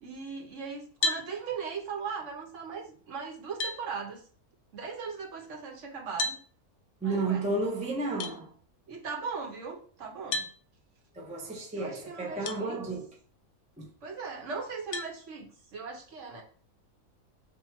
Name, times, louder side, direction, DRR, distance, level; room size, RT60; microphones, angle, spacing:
voice 1, 0.0-4.2 4.7-6.4 7.0-7.5 8.9-10.5 11.7-12.9 14.0-16.4, right 5 dB, 55° right, 1.2 m, -39 dB
sound 1, 1.0-1.3 2.9-3.0 3.6-3.8 6.2-6.4 8.2-8.4 10.3-10.5 12.4-12.6 13.2-13.3 14.9-15.1, left 3 dB, 75° left, 1.0 m, -31 dB
voice 2, 7.0-8.5 11.2-13.0 13.8-13.9, right 3 dB, 10° right, 0.3 m, -32 dB
3.5 x 2.3 x 4.4 m
omnidirectional pair, 1.6 m